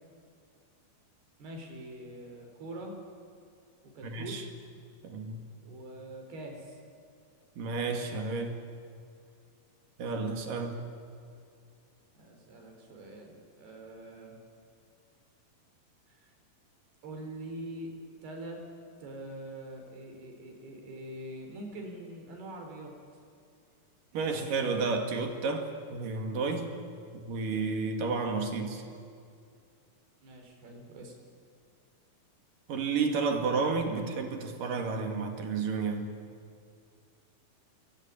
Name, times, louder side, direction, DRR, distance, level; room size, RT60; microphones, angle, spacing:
voice 1, 1.4-3.0 3.9-4.4 5.6-6.8 12.1-14.4 16.1-16.3 17.0-17.9 18.2-18.6 19.0-22.9 30.2-31.1, right 1 dB, 80° right, 2 dB, 6.5 m, -44 dB
voice 2, 4.0-4.5 5.0-5.4 7.6-8.6 10.0-10.8 24.1-26.7 27.1-28.8 32.7-36.1, right 4 dB, 60° right, 5 dB, 3.7 m, -31 dB
28.5 x 22.5 x 8.8 m, 2.4 s
omnidirectional pair, 4.5 m